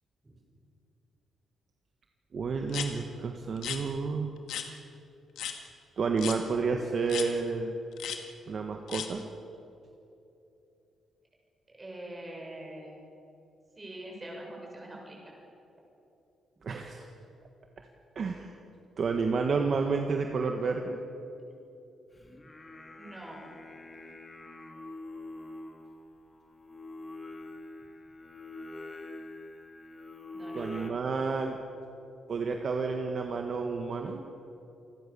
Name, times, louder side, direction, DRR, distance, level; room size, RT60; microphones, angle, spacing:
voice 1, 2.3-4.3 6.0-7.7 8.5-9.2 16.6-17.1 18.1-18.6 19.0-21.0 30.5-31.6 32.3-34.3, right 4 dB, 45° right, 3 dB, 1.6 m, -30 dB
sound 1, 2.7-2.9 3.6-3.8 4.5-4.7 5.3-5.6 6.2-6.4 7.1-7.3 8.0-8.2 8.9-9.1, left 9 dB, 85° left, 2.2 m, -35 dB
voice 2, 11.7-13.0 13.8-15.2 21.5-21.6 23.0-23.5 30.3-30.9, right 1 dB, 20° right, -1 dB, 6.9 m, -44 dB
Singing, 22.1-30.9, left 2 dB, 20° left, 2.3 m, -45 dB
28.0 x 20.5 x 7.0 m, 2.8 s
cardioid pair, 145°, 0 cm